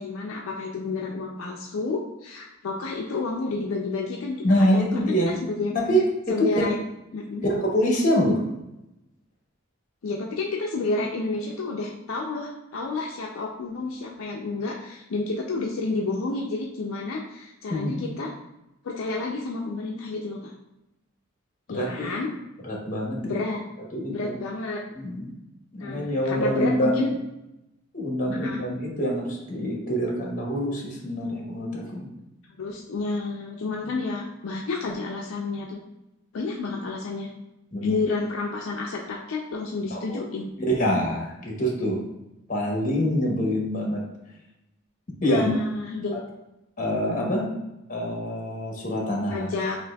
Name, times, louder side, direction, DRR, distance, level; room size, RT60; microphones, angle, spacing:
voice 1, 0.0-5.7 6.3-6.8 7.1-7.4 10.0-18.3 18.8-20.5 21.7-22.3 23.2-23.6 24.1-24.8 25.8-27.1 28.4-28.6 32.6-35.8 36.3-37.3 37.8-40.5 45.2-46.2 47.2-47.3 49.3-49.8, left 3 dB, 75° left, -1 dB, 0.4 m, -30 dB
voice 2, 4.4-5.4 5.9-6.0 6.4-6.5 7.4-8.4 17.7-18.1 21.7-22.1 22.6-23.3 23.9-24.3 24.9-25.4 25.7-27.0 27.9-32.1 37.7-38.0 39.9-40.2 40.7-42.0 42.5-44.0 45.2-45.5 46.1-46.2 46.8-47.5 47.9-49.5, equal, 40° left, -1 dB, 1.0 m, -25 dB
5.8 x 2.6 x 2.3 m, 0.92 s
head